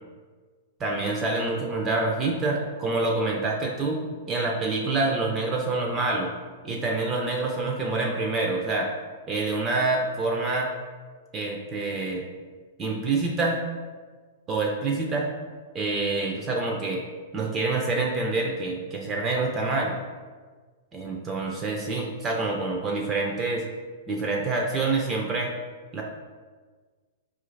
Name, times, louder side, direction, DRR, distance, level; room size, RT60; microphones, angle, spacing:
voice 1, 0.8-6.3 6.6-8.9 9.3-10.7 11.3-12.2 12.8-13.6 14.5-15.3 15.7-17.0 17.3-20.0 20.9-23.6 24.1-25.5 25.9-26.0, right 3 dB, 20° right, 0 dB, 0.3 m, -27 dB
4.3 x 2.5 x 3.1 m, 1.4 s
supercardioid pair, 160°, 0 cm